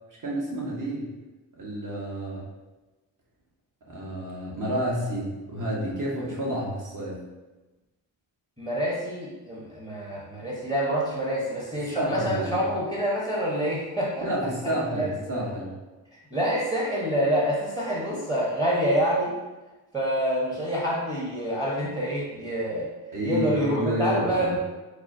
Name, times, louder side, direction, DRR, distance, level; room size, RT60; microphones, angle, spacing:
voice 1, 0.2-1.1 1.6-2.4 3.9-7.2 11.7-12.6 14.2-15.8 23.1-24.6, right 1 dB, 40° right, -4 dB, 1.4 m, -30 dB
voice 2, 8.6-14.3 14.9-15.1 16.3-19.3 19.9-22.9 23.2-24.6, equal, 15° right, -5 dB, 1.2 m, -27 dB
4.7 x 2.3 x 2.7 m, 1.1 s
supercardioid pair, 50°, 48 cm